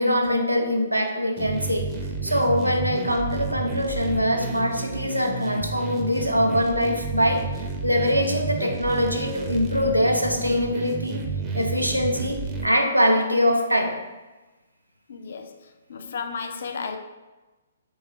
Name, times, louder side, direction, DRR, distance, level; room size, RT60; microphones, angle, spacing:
voice 1, 0.0-1.9 2.2-11.2 11.5-14.0, equal, 90° right, 2 dB, 0.5 m, -23 dB
sound 1, 1.4-12.7, right 4 dB, 20° right, 0.5 m, -31 dB
voice 2, 15.1-15.6 15.9-17.0, left 5 dB, 55° left, 7 dB, 0.4 m, -33 dB
3.6 x 3.2 x 3.1 m, 1.2 s
figure-of-eight pair, 125°, 0 cm